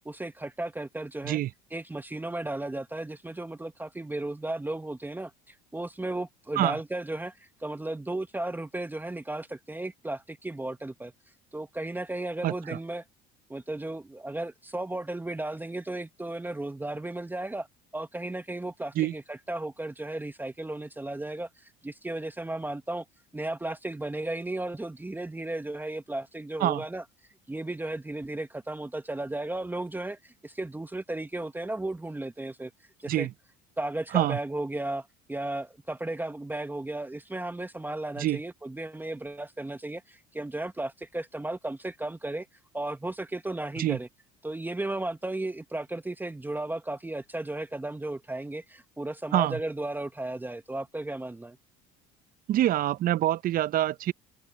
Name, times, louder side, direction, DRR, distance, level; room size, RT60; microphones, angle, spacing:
voice 1, 0.0-1.4 1.7-11.1 11.5-13.0 13.5-17.7 17.9-23.0 23.3-27.0 27.5-32.7 33.0-33.3 33.8-42.5 42.7-44.1 44.4-51.6, right 2 dB, 10° right, 1.1 m, -35 dB
voice 2, 12.4-12.8 19.0-19.1 26.6-26.8 33.1-33.3 34.1-34.4 38.2-38.4 43.8-44.0 49.3-49.6 52.5-54.1, right 13 dB, 45° right, 0.6 m, -26 dB
supercardioid pair, 90°, 20 cm